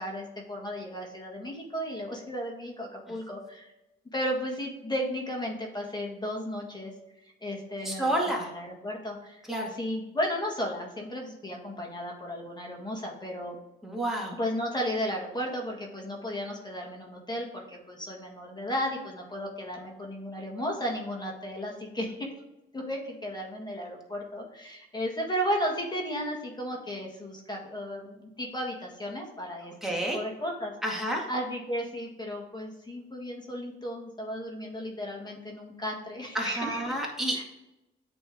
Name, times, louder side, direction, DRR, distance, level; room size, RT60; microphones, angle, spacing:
voice 1, 0.0-3.7 4.1-6.9 7.4-13.6 14.3-22.3 22.7-29.7 30.0-30.7 31.0-36.8 37.3-37.4, equal, 20° left, 0 dB, 1.7 m, -34 dB
voice 2, 7.9-8.5 9.5-9.7 13.8-14.4 29.8-30.2 30.8-31.3 36.3-37.4, right 1 dB, ahead, -2 dB, 2.0 m, -29 dB
8.8 x 3.5 x 3.6 m, 0.95 s
cardioid pair, 85°, 21 cm